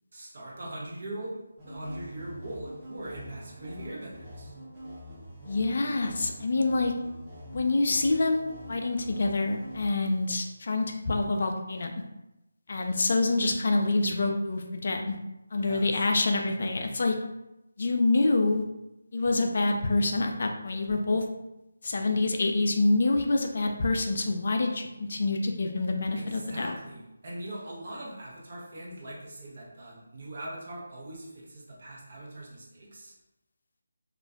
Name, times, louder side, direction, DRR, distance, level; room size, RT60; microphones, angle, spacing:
voice 1, 0.1-1.4 1.7-4.5 15.6-15.9 26.1-33.1, right 1 dB, 50° right, -4 dB, 0.8 m, -41 dB
sound 1, 1.6-9.9, equal, 20° right, 0.6 m, -45 dB
voice 2, 5.5-6.9 7.5-11.9 12.7-15.2 15.5-17.2 17.8-18.6 19.1-21.2 21.8-26.7, left 2 dB, 55° left, 3 dB, 0.3 m, -26 dB
2.4 x 2.1 x 2.4 m, 0.90 s
figure-of-eight pair, 160°, 0 cm